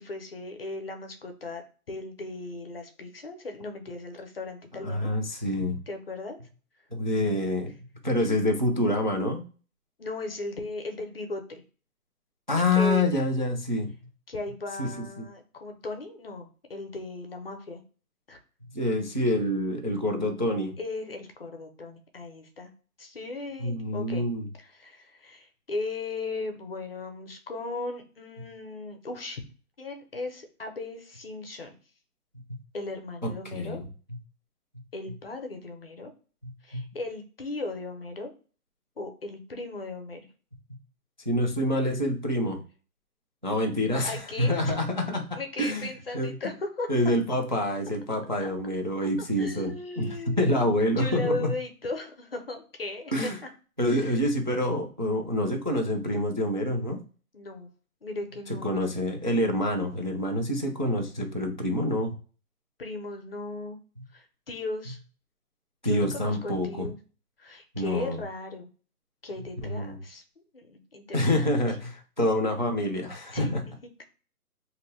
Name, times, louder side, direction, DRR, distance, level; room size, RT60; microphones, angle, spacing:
voice 1, 0.0-1.6 1.9-5.1 5.9-6.4 10.0-11.6 12.7-13.0 14.3-17.8 18.3-18.4 20.8-22.7 23.0-24.3 24.6-29.4 29.8-31.8 32.7-33.8 34.9-36.1 36.6-38.3 39.0-40.3 44.0-44.7 45.4-46.9 48.4-48.5 49.4-53.5 53.9-54.2 57.3-57.7 58.0-58.7 62.8-63.8 64.1-65.0 65.8-67.0 67.4-68.7 69.2-70.2 70.5-71.0 71.4-71.5 73.3-74.0, left 2 dB, 40° left, 5 dB, 0.5 m, -37 dB
voice 2, 4.8-5.8 6.9-7.7 8.0-9.4 12.5-13.9 14.8-14.9 18.7-20.8 23.6-24.4 33.2-33.8 36.7-36.8 41.3-42.6 43.4-45.9 46.1-46.3 46.9-51.5 53.1-53.4 53.8-57.0 58.6-62.1 65.8-66.9 67.7-68.2 69.6-70.0 71.1-73.6, left 1 dB, 35° right, 2 dB, 0.4 m, -27 dB
3.2 x 2.6 x 2.6 m, 0.39 s
hypercardioid pair, 160°, 46 cm